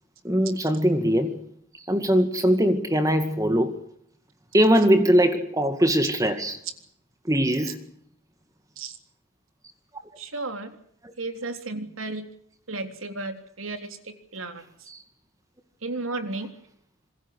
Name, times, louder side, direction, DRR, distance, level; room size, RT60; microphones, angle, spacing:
voice 1, 0.2-1.4 1.9-3.7 4.5-6.6 7.3-7.8 14.9-15.0, equal, 15° right, 2.1 m, -21 dB
voice 2, 10.2-10.8 11.2-12.3 12.7-14.7 15.8-16.5, right 2 dB, 75° right, 3.7 m, -33 dB
27.0 x 22.5 x 6.4 m
head